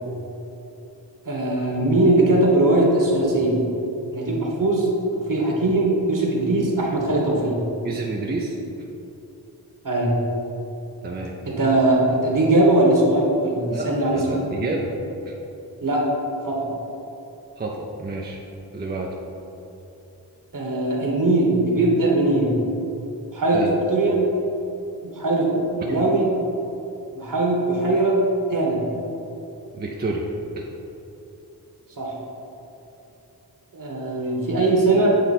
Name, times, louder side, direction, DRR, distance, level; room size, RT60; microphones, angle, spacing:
voice 1, 1.2-3.5 4.1-4.9 5.3-7.5 9.8-10.1 11.4-14.4 15.8-16.0 16.4-16.6 20.5-22.5 23.3-23.6 23.9-24.2 25.0-26.3 27.1-28.1 28.5-28.8 32.0-32.1 33.7-35.1, right 2 dB, 55° right, -2 dB, 1.4 m, -20 dB
voice 2, 7.8-8.6 11.0-11.3 13.7-13.9 14.1-14.9 15.2-15.3 17.6-18.4 18.7-19.1 23.5-23.8 29.7-30.3 30.6-30.7, right 3 dB, 25° right, -1 dB, 0.5 m, -29 dB
8.1 x 3.9 x 4.3 m, 2.9 s
wide cardioid pair, 95°, 40 cm